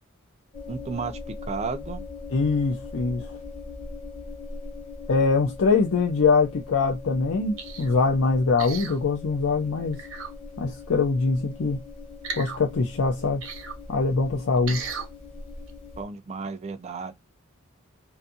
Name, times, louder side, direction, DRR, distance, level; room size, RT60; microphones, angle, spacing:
sound 1, 0.5-16.0, left 3 dB, 30° left, 1.0 m, -40 dB
voice 1, 0.7-1.2 1.5-2.0 16.0-17.1, right 4 dB, 30° right, 0.3 m, -33 dB
voice 2, 2.3-3.4 5.1-10.0 10.6-11.8 12.4-13.4 13.9-14.8, left 4 dB, 75° left, 0.5 m, -23 dB
sound 2, 7.6-7.9 8.6-9.0 9.9-10.3 12.2-12.6 13.4-13.8 14.7-15.1 15.7-15.8, right 5 dB, 70° right, 0.7 m, -35 dB
2.6 x 2.3 x 2.6 m
head